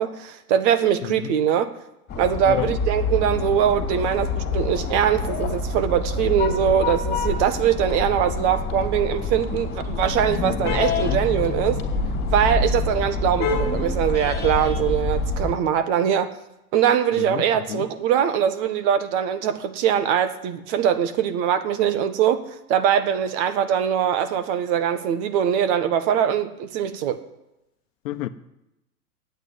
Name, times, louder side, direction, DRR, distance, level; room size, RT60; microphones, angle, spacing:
voice 1, 0.0-1.7 2.2-11.8 12.3-16.3 16.7-22.4 22.7-27.2, right 9 dB, 45° right, 1.5 m, -22 dB
voice 2, 1.0-1.3 2.5-2.7 10.4-11.2 17.2-17.9 28.0-28.3, left 12 dB, 60° left, 1.1 m, -30 dB
sound 1, 2.1-15.5, left 3 dB, 20° left, 2.8 m, -26 dB
12.0 x 8.9 x 9.5 m
hypercardioid pair, 125°, 45 cm